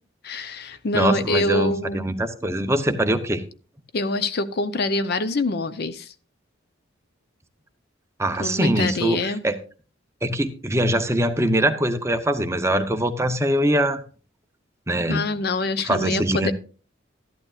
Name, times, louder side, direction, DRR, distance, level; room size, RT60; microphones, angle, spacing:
voice 1, 0.2-2.1 3.9-6.1 8.4-9.4 15.1-16.5, left 2 dB, 55° left, 0.6 m, -25 dB
voice 2, 0.9-3.4 8.2-9.6 10.2-14.0 14.9-15.3 15.8-16.5, right 1 dB, 15° right, 0.7 m, -22 dB
13.5 x 11.5 x 2.4 m
head